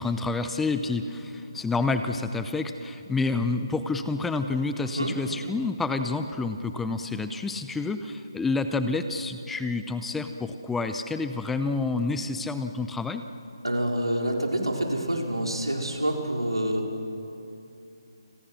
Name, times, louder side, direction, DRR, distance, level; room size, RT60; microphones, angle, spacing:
voice 1, 0.0-13.2, left 3 dB, 5° left, 8 dB, 0.7 m, -29 dB
voice 2, 13.6-16.9, right 1 dB, 90° right, 1 dB, 4.6 m, -27 dB
29.5 x 21.5 x 6.3 m, 2.7 s
figure-of-eight pair, 150°, 3 cm